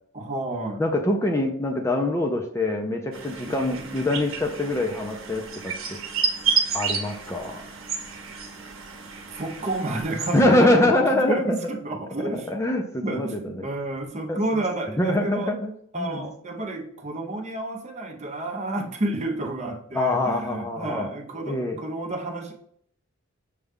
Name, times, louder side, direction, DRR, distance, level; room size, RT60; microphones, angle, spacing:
voice 1, 0.1-0.8 3.5-4.0 9.3-12.6 13.0-15.5 15.9-22.5, right 2 dB, 35° right, 1 dB, 0.7 m, -31 dB
voice 2, 0.8-6.0 6.7-7.6 10.3-11.6 12.3-13.7 14.3-14.4 14.9-16.3 19.9-21.1 21.5-21.8, left 1 dB, 15° left, 1 dB, 0.4 m, -24 dB
sound 1, 3.1-10.4, right 5 dB, 65° right, 0.9 m, -31 dB
6.5 x 2.3 x 3.5 m, 0.65 s
head